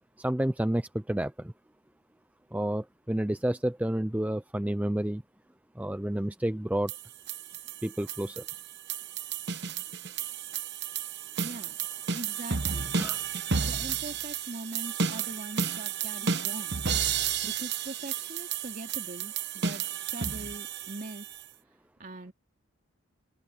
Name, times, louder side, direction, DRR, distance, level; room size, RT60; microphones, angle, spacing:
voice 1, 0.2-1.5 2.5-5.2 5.8-6.9 7.8-8.4 13.0-13.2, right 1 dB, 5° right, 0.5 m, -30 dB
sound 1, 6.9-21.4, right 6 dB, 55° right, 1.1 m, -32 dB
voice 2, 11.4-11.8 12.1-12.9 13.6-16.8 17.4-19.8 20.1-21.3 22.0-22.3, right 1 dB, 40° right, 3.0 m, -42 dB
open air
head